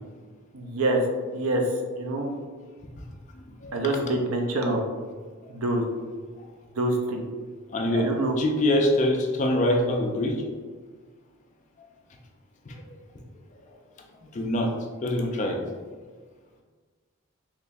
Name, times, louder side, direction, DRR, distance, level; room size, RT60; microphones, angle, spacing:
voice 1, 0.5-1.0 1.3-1.6 2.0-2.3 3.7-4.8 5.5-5.8 6.8-7.2 7.9-8.3, right 2 dB, 85° right, 2 dB, 0.5 m, -26 dB
voice 2, 3.3-3.8 5.5-5.6 7.7-8.1 8.4-10.4 12.7-12.8 14.3-14.7 15.0-15.6, left 1 dB, 35° left, 2 dB, 0.4 m, -24 dB
3.5 x 2.9 x 2.5 m, 1.5 s
head